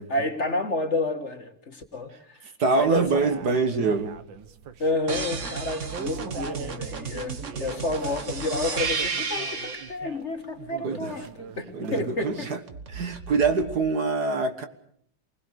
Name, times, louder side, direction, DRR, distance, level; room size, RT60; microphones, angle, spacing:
voice 1, 0.0-2.5 2.8-3.3 4.8-11.7 11.9-12.5, left 2 dB, 40° left, 2.1 m, -30 dB
voice 2, 2.6-4.2 10.8-11.1 11.7-12.6 12.9-14.7, right 4 dB, 60° right, 2.1 m, -25 dB
sound 1, 2.9-12.5, right 7 dB, 90° right, 1.9 m, -42 dB
sound 2, 5.1-9.9 12.7-13.8, right 5 dB, 45° right, 1.7 m, -33 dB
28.0 x 21.0 x 6.5 m
omnidirectional pair, 2.0 m